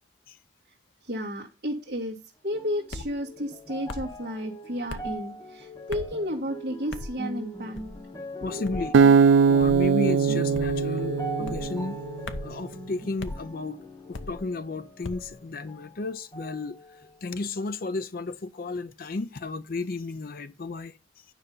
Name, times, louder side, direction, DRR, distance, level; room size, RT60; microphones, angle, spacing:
voice 1, 1.0-2.2 2.4-7.8 8.4-8.7, equal, 50° right, 1.7 m, -32 dB
sound 1, 2.5-16.0 16.3-17.3 17.9-18.0, equal, 15° left, 1.0 m, -40 dB
sound 2, 2.9-3.1 3.9-4.2 4.9-5.1 5.9-6.2 6.9-7.2 7.7-8.0 8.6-8.9 9.6-9.9 10.5-10.9 11.4-11.7 12.3-12.6 13.2-13.4 14.1-14.4 15.0-15.3, left 2 dB, 80° left, 0.8 m, -37 dB
voice 2, 8.4-9.0 9.5-12.0 12.4-13.8 14.1-21.2, left 3 dB, 45° left, 0.5 m, -33 dB
Acoustic guitar, 8.9-12.2, right 5 dB, 75° right, 0.4 m, -20 dB
9.9 x 5.4 x 5.4 m
head